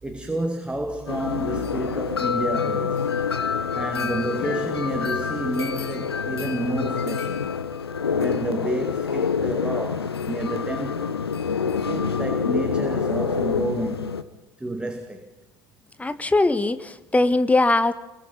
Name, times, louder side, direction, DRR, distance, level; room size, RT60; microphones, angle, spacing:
voice 1, 0.0-3.1 3.7-7.5 8.1-11.2 11.6-14.2 14.6-15.2, right 1 dB, 10° right, 2.2 m, -30 dB
sound 1, 1.1-14.2, left 6 dB, 80° left, 1.1 m, -27 dB
voice 2, 16.0-17.9, left 2 dB, 10° left, 1.5 m, -20 dB
29.0 x 22.0 x 5.7 m
figure-of-eight pair, 70°, 13 cm